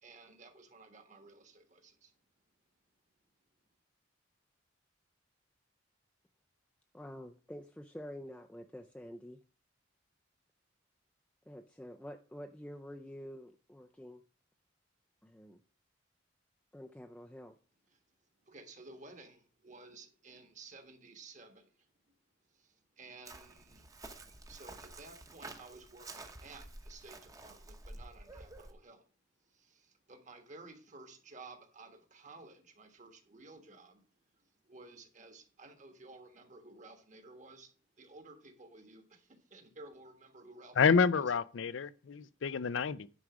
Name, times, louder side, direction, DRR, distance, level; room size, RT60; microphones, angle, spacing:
voice 1, 0.0-2.1 17.9-18.0 18.4-21.7 22.5-23.9 24.5-29.1 29.4-34.0 34.6-37.7 38.0-41.3, right 3 dB, 40° right, 1.5 m, -54 dB
voice 2, 6.9-9.4 11.5-14.2 15.2-15.6 16.7-17.6, equal, 5° left, 0.4 m, -48 dB
Chirp tweet, 23.3-28.7, right 2 dB, 20° right, 0.9 m, -50 dB
voice 3, 40.8-43.1, left 5 dB, 75° left, 0.5 m, -28 dB
9.9 x 4.8 x 6.1 m
head